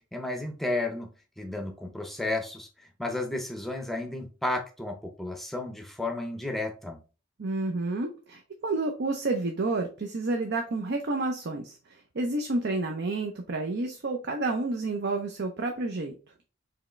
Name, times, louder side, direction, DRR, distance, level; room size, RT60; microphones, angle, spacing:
voice 1, 0.1-1.1 1.4-2.7 3.0-7.0, left 2 dB, ahead, 0.6 m, -32 dB
voice 2, 7.4-16.1, right 2 dB, 55° right, 0.6 m, -30 dB
4.7 x 3.1 x 3.1 m
head